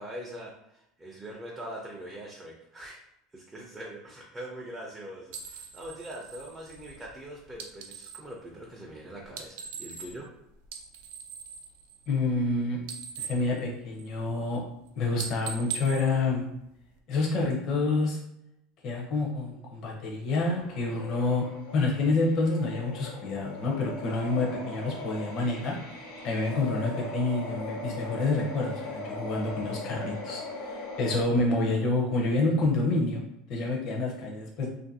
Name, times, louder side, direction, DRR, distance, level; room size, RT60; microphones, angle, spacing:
voice 1, 0.0-3.0 3.3-10.3, right 1 dB, 10° right, -3 dB, 0.4 m, -42 dB
sound 1, 5.3-8.3 9.2-10.3 10.6-12.5 12.7-14.3 14.7-14.9 15.2-17.0, right 7 dB, 80° right, 0.4 m, -41 dB
voice 2, 12.1-12.8 13.2-14.6 15.0-16.4 17.1-18.2 18.8-21.4 21.7-25.8 26.2-33.2 33.5-34.7, left 3 dB, 45° left, -2 dB, 0.6 m, -28 dB
sound 2, 20.4-31.2, left 2 dB, 85° left, 0.9 m, -39 dB
2.5 x 2.5 x 2.6 m, 0.81 s
supercardioid pair, 150°, 0 cm